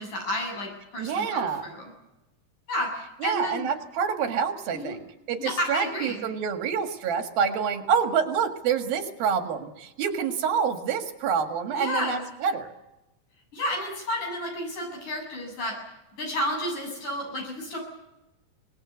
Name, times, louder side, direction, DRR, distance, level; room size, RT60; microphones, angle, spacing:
voice 1, 0.0-1.8 2.7-3.7 4.7-4.9 5.4-6.2 11.7-12.2 13.5-15.8 16.2-17.8, left 1 dB, 60° left, 1 dB, 9.1 m, -31 dB
voice 2, 1.0-1.7 3.2-12.7, right 7 dB, 90° right, 6 dB, 3.7 m, -27 dB
24.5 x 19.5 x 8.2 m, 0.96 s
omnidirectional pair, 4.1 m